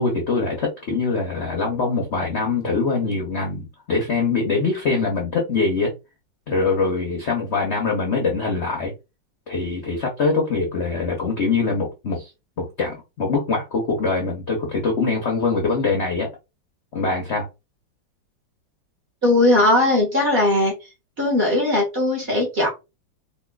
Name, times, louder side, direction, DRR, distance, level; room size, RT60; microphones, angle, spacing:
voice 1, 0.0-5.9 6.5-8.9 9.5-12.3 12.6-16.3 16.9-17.5, left 4 dB, 60° left, 0.7 m, -23 dB
voice 2, 19.2-20.7 21.2-22.7, left 2 dB, 35° right, 1.2 m, -18 dB
4.2 x 2.6 x 2.2 m
omnidirectional pair, 2.1 m